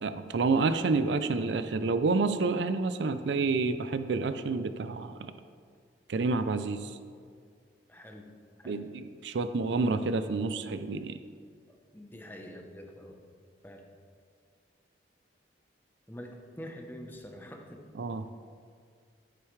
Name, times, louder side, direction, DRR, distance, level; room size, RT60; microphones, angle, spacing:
voice 1, 0.0-5.3 6.1-7.0 8.7-11.2 18.0-18.2, right 3 dB, 75° right, 11 dB, 0.4 m, -29 dB
voice 2, 7.9-8.3 8.6-8.9 11.7-13.2 13.6-13.9 16.1-17.9, equal, 10° left, 2 dB, 0.8 m, -46 dB
10.5 x 9.3 x 3.2 m, 2.1 s
head